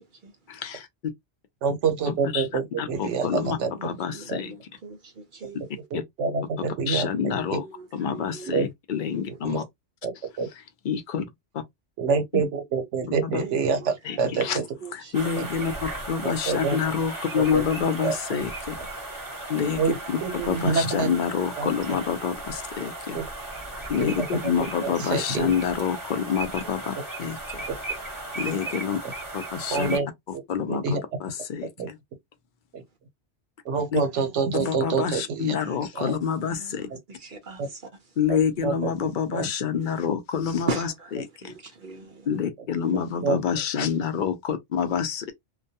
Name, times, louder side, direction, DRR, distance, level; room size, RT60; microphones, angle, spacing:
voice 1, 0.5-0.9 2.1-2.5 2.8-4.5 5.9-6.0 6.6-7.6 7.9-9.6 10.8-11.3 12.3-12.4 13.2-13.4 14.0-14.6 14.9-18.8 19.5-19.8 20.5-23.2 23.9-27.6 28.4-29.0 29.3-30.0 30.5-30.8 31.2-32.0 33.9-34.0 34.6-36.9 38.2-40.9 41.4-41.5 42.3-45.3, left 7 dB, 60° left, 0.5 m, -27 dB
voice 2, 1.6-3.7 4.3-4.4 5.9-7.6 8.5-8.7 9.4-9.6 10.0-10.1 10.4-10.5 12.0-14.6 15.4-15.5 16.2-16.8 17.4-17.6 18.0-18.1 19.8-21.1 21.6-21.7 23.1-23.2 24.0-24.3 24.6-25.5 27.7-27.8 29.7-30.4 30.7-31.0 31.8-31.9 32.7-32.8 33.6-35.6 35.9-36.2 37.6-37.7 38.6-38.9 39.3-39.5 42.9-43.4 43.8-43.9, right 5 dB, 75° right, 1.0 m, -27 dB
voice 3, 3.3-5.6 7.3-8.6 9.1-9.5 13.4-13.9 14.2-15.2 19.5-19.8 24.3-24.7 34.9-35.1 35.6-35.8 36.5-37.8 40.7-41.1 41.4-42.4, right 3 dB, 55° right, 0.6 m, -39 dB
sound 1, 15.1-30.0, right 2 dB, 20° right, 0.8 m, -36 dB
2.2 x 2.2 x 2.6 m
omnidirectional pair, 1.2 m